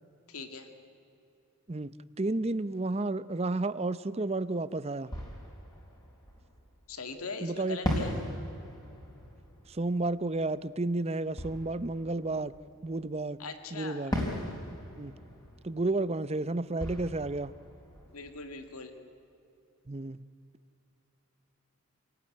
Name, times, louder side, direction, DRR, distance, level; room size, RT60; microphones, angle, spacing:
voice 1, 0.3-0.7 6.9-8.2 13.4-14.1 18.1-18.9, left 3 dB, 85° left, 7 dB, 2.2 m, -40 dB
voice 2, 1.7-5.1 7.4-7.8 9.7-12.5 12.8-13.4 13.7-14.1 15.0-15.1 15.6-17.5 19.9-20.2, right 2 dB, 30° right, 15 dB, 0.6 m, -31 dB
Fireworks, 4.5-4.6 5.1-7.0 7.8-13.2 14.1-18.8, equal, 20° left, 4.0 m, -39 dB
27.5 x 18.0 x 9.8 m, 2.7 s
head